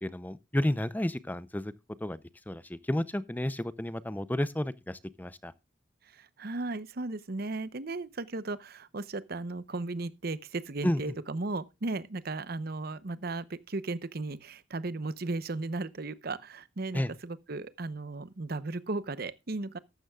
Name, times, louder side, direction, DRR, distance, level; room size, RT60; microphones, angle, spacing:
voice 1, 0.0-1.7 2.0-2.2 2.5-5.5 10.8-11.0 16.9-17.1, left 1 dB, 10° left, 0.5 m, -31 dB
voice 2, 6.1-19.8, right 3 dB, 55° right, 0.8 m, -36 dB
14.0 x 12.0 x 2.3 m
head